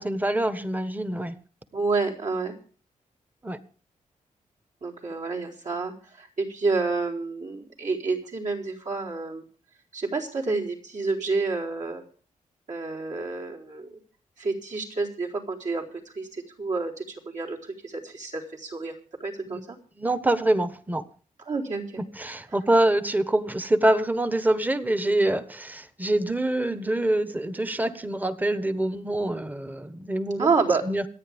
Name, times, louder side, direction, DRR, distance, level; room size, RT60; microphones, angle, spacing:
voice 1, 0.0-1.3 3.4-3.6 19.5-19.6 20.0-21.0 22.2-30.5 30.8-31.0, right 1 dB, 10° right, 1.3 m, -25 dB
voice 2, 1.7-2.5 4.8-9.4 9.9-12.0 12.7-14.0 14.4-18.9 19.2-19.8 21.5-22.0 30.4-30.8, right 4 dB, 60° right, 4.3 m, -29 dB
26.5 x 9.1 x 3.6 m
cardioid pair, 85°, 14 cm